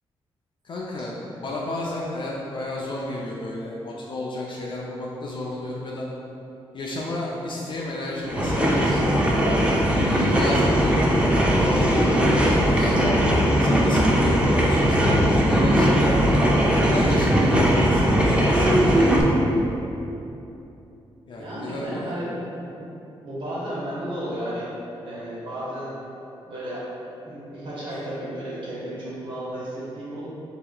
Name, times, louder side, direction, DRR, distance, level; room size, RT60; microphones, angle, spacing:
voice 1, 0.6-6.1 6.7-9.2 9.9-13.1 13.6-16.4 16.8-19.1 21.3-22.1, left 1 dB, 50° left, -4 dB, 0.4 m, -31 dB
sound 1, 8.2-19.2, equal, 10° right, 0.5 m, -19 dB
voice 2, 21.4-22.9 23.2-24.7 25.0-25.9 26.5-26.9 27.2-30.3, right 1 dB, 55° right, -8 dB, 1.2 m, -33 dB
3.7 x 2.9 x 2.2 m, 2.9 s
cardioid pair, 65°, 10 cm